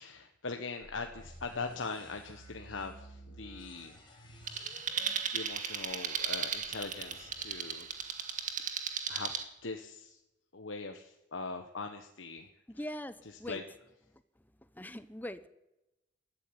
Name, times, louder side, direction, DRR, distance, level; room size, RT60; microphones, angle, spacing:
voice 1, 0.0-4.0 4.5-4.9 5.3-8.1 8.5-8.7 9.1-9.3 9.6-10.2 10.5-12.5 12.8-12.9 13.2-13.6, left 4 dB, 90° left, 5 dB, 1.3 m, -41 dB
sound 1, 0.8-8.7, equal, 25° left, 5.5 m, -54 dB
sound 2, 4.5-9.4, right 7 dB, 40° right, 2.0 m, -36 dB
voice 2, 12.7-13.6 14.7-15.5, left 1 dB, 10° left, 13 dB, 0.8 m, -41 dB
21.0 x 14.0 x 9.8 m, 0.94 s
head